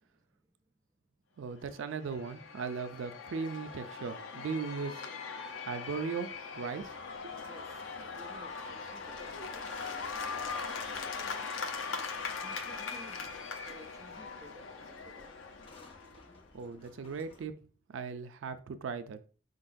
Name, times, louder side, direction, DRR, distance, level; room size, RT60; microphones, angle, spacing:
voice 1, 0.0-0.5 7.4-11.4 12.4-15.4, right 1 dB, 15° right, 0.4 m, -56 dB
voice 2, 1.4-5.1 5.7-6.3 6.5-6.9 16.5-17.5 17.9-19.2, right 5 dB, 80° right, 0.4 m, -38 dB
Cheering / Applause / Crowd, 1.7-16.4, left 5 dB, 80° left, 0.6 m, -41 dB
sound 1, 6.8-17.4, left 2 dB, 30° left, 0.6 m, -57 dB
4.5 x 3.9 x 2.5 m
head